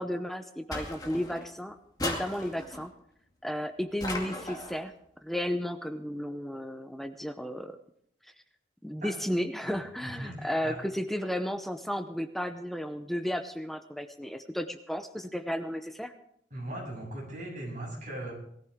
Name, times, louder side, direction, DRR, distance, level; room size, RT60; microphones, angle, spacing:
voice 1, 0.0-2.9 3.4-4.9 5.2-7.8 8.8-16.1, equal, ahead, 7 dB, 0.6 m, -33 dB
sound 1, 0.7-1.5 2.0-2.9 4.0-4.8, left 2 dB, 20° left, 2.3 m, -36 dB
voice 2, 10.0-10.8 16.5-18.3, right 1 dB, 45° right, -2 dB, 7.5 m, -39 dB
19.5 x 14.0 x 3.6 m, 0.69 s
head